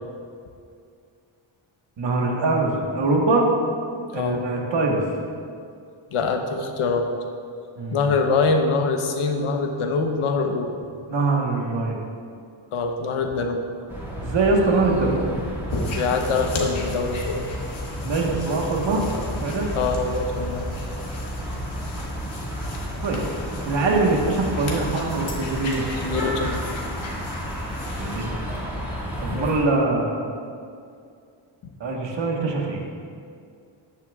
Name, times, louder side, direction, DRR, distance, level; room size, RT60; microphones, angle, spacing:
voice 1, 2.0-3.5 4.1-5.0 7.8-8.1 11.1-12.0 14.2-15.3 18.0-19.0 19.4-19.7 23.0-23.2 23.6-25.8 27.9-28.4 29.2-30.2 31.8-32.8, right 3 dB, 60° right, -1 dB, 1.5 m, -23 dB
voice 2, 6.1-7.1 7.9-10.7 12.7-13.6 16.0-17.4 19.7-20.7 26.0-26.6 29.3-29.5, left 4 dB, 85° left, 4 dB, 1.1 m, -24 dB
sound 1, 13.9-29.6, equal, 5° right, 2.2 m, -31 dB
sound 2, 15.7-28.3, left 2 dB, 65° left, 1.7 m, -36 dB
14.0 x 9.7 x 2.4 m, 2.4 s
wide cardioid pair, 155°, 49 cm